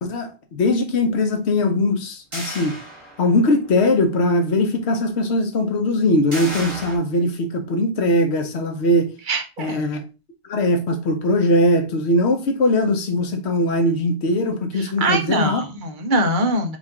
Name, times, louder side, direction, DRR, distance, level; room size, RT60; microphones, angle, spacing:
voice 1, 0.0-2.7 3.2-9.1 9.6-10.0 10.4-15.6, left 1 dB, 75° left, 1.1 m, -20 dB
sound 1, 2.3-3.6 4.0-4.1 6.3-7.0, right 1 dB, 30° right, 1.4 m, -33 dB
voice 2, 9.3-9.9 14.8-16.8, right 1 dB, 50° right, 0.8 m, -23 dB
5.1 x 2.5 x 3.6 m
omnidirectional pair, 1.1 m